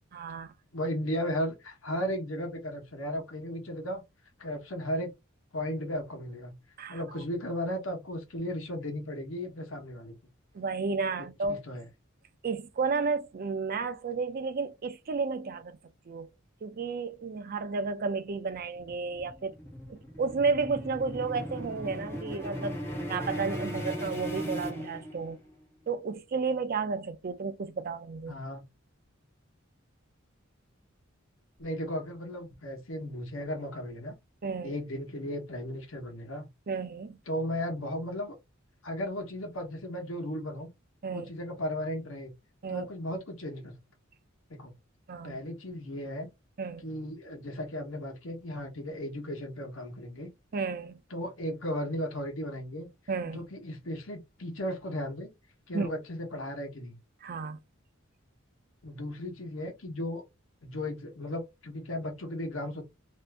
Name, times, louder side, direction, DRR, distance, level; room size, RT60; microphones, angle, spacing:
voice 1, 0.1-0.5 6.8-7.0 10.5-11.6 12.4-15.8 16.1-16.3 16.6-19.5 19.9-22.8 23.1-25.4 25.9-28.4 34.4-34.8 36.7-37.2 41.0-41.3 42.6-42.9 45.1-45.4 46.6-46.9 50.5-51.0 53.1-53.4 55.7-55.9 57.2-57.6, right 4 dB, 45° right, 0.4 m, -32 dB
voice 2, 0.7-4.0 4.4-5.1 5.5-6.5 6.9-10.1 11.2-11.9 28.3-28.6 31.6-34.1 34.6-36.5 37.3-38.4 38.8-40.7 41.1-42.3 42.7-43.7 44.5-44.7 45.2-46.3 46.8-50.3 51.1-52.9 53.2-55.3 55.7-57.0 58.8-60.2 60.6-62.8, equal, 65° left, 1.0 m, -35 dB
sound 1, 18.3-25.5, equal, 10° left, 1.1 m, -37 dB
2.7 x 2.5 x 3.4 m
head